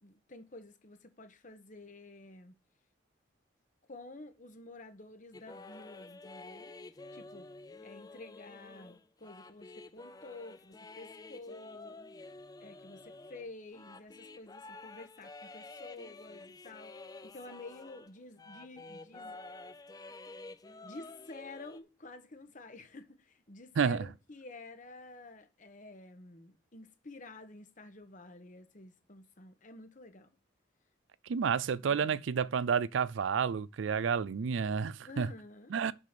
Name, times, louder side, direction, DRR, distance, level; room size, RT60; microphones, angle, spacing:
voice 1, 0.0-2.5 3.9-6.7 7.1-7.5 7.8-12.0 12.6-16.9 17.2-19.4 20.8-30.3 31.8-32.2 35.0-35.7, left 2 dB, 40° left, 1.1 m, -50 dB
sound 1, 5.3-18.1 18.4-21.8, left 3 dB, 20° left, 0.4 m, -50 dB
voice 2, 23.8-24.1 31.3-35.3 35.7-35.9, right 6 dB, 75° right, 0.4 m, -30 dB
6.1 x 5.8 x 6.7 m
head